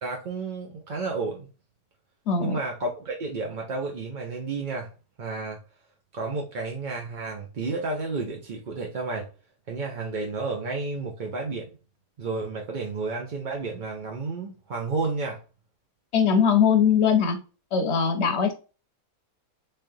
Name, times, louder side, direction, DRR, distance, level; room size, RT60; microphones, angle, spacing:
voice 1, 0.0-1.5 2.4-4.9 5.2-5.6 6.1-9.3 9.7-11.7 12.2-15.4, right 3 dB, 55° right, 0.5 m, -31 dB
voice 2, 2.3-2.6 16.1-17.4 17.7-18.5, left 7 dB, 55° left, 0.9 m, -21 dB
3.6 x 3.3 x 2.6 m
omnidirectional pair, 1.6 m